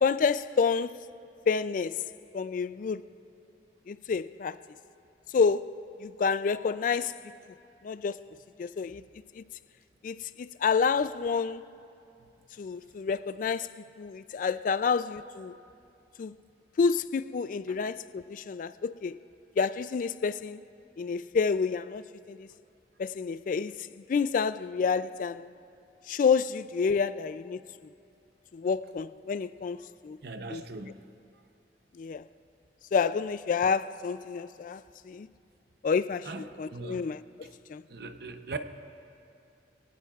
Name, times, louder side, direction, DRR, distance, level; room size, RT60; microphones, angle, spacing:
voice 1, 0.0-0.9 1.5-2.0 2.3-3.0 3.9-4.6 5.3-5.7 6.0-7.2 7.8-8.2 8.6-9.0 9.4-9.5 10.0-11.6 12.6-13.7 14.0-15.5 16.2-16.3 16.8-19.2 19.6-20.6 21.0-22.0 22.3-22.5 23.0-23.7 24.1-25.5 26.1-27.6 28.5-29.8 30.0-30.2 30.5-30.6 32.0-32.2 32.9-34.8 35.1-35.3 35.8-37.2 37.7-37.8, left 5 dB, 45° left, 0.3 m, -28 dB
voice 2, 30.2-31.0 36.3-37.1 37.4-37.5 37.9-38.6, right 3 dB, 60° right, 0.7 m, -40 dB
24.0 x 17.5 x 2.4 m
head